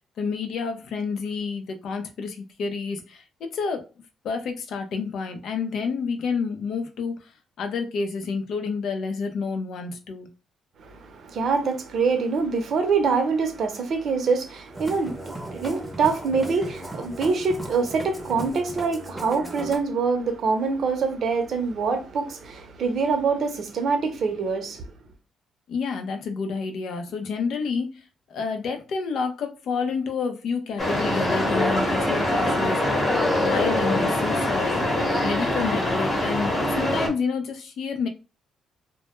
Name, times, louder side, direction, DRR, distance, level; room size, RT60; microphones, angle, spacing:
voice 1, 0.2-3.9 4.2-7.3 7.6-10.3 25.7-28.0 28.3-32.8 33.3-35.0 35.2-38.1, left 5 dB, 70° left, 0.5 m, -29 dB
voice 2, 10.8-24.9, right 4 dB, 60° right, 0.6 m, -25 dB
Musical instrument, 14.7-19.8, right 1 dB, 5° right, 0.7 m, -37 dB
sound 1, 30.8-37.1, left 1 dB, 30° left, 0.9 m, -23 dB
2.1 x 2.1 x 2.9 m
cardioid pair, 90°, 0 cm